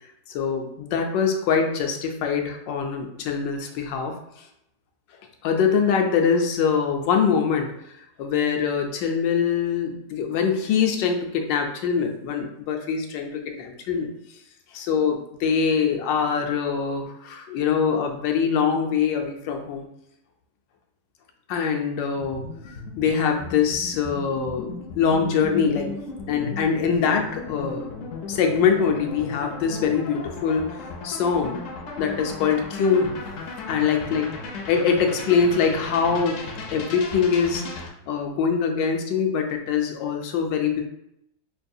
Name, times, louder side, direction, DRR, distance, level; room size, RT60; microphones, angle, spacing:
voice 1, 0.3-4.2 5.4-7.7 8.2-14.1 14.7-19.9 21.5-25.9 26.3-27.9 28.3-31.6 32.0-33.1 33.7-34.3 34.7-40.8, left 6 dB, 90° left, 3 dB, 1.3 m, -23 dB
sound 1, 22.2-37.9, left 4 dB, 65° left, 0.8 m, -36 dB
5.4 x 2.3 x 2.6 m, 0.79 s
omnidirectional pair, 1.9 m